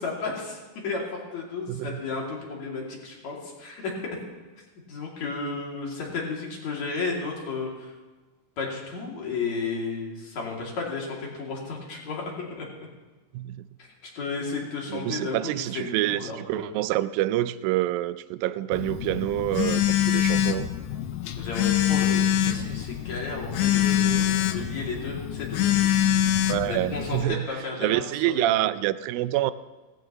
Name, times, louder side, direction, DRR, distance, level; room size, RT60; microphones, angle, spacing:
voice 1, 0.0-3.9 4.9-7.9 8.6-12.7 13.8-13.9 14.2-16.7 21.4-25.9 26.7-28.6, left 4 dB, 50° left, 3.6 m, -33 dB
voice 2, 1.7-2.0 13.3-13.6 14.9-20.7 26.5-27.5 27.8-29.5, right 15 dB, 80° right, 2.2 m, -27 dB
Telephone, 18.7-27.2, left 11 dB, 80° left, 1.7 m, -25 dB
18.0 x 15.0 x 3.0 m
omnidirectional pair, 4.2 m